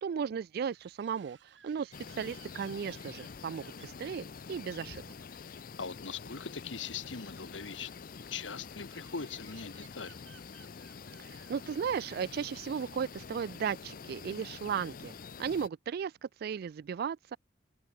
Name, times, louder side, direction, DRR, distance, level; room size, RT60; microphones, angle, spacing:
voice 1, 0.0-5.0 11.2-15.1 15.4-17.4, right 7 dB, 55° right, 0.3 m, -36 dB
sound 1, 0.5-12.9, right 9 dB, 80° right, 4.0 m, -62 dB
sound 2, 1.9-15.7, left 5 dB, 50° left, 0.6 m, -47 dB
voice 2, 5.3-7.9 8.3-10.2, left 5 dB, 85° left, 1.5 m, -41 dB
head